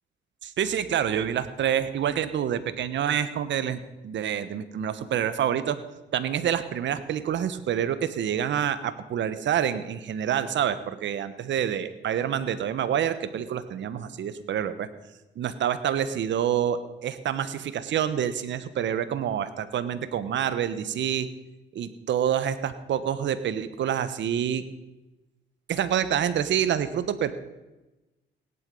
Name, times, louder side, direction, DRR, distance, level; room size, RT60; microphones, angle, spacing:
voice 1, 0.4-5.8 6.1-14.9 15.4-21.3 21.7-24.6 25.7-27.3, right 9 dB, 65° right, 13 dB, 1.1 m, -27 dB
17.0 x 11.0 x 5.4 m, 1.1 s
cardioid pair, 90°, 20 cm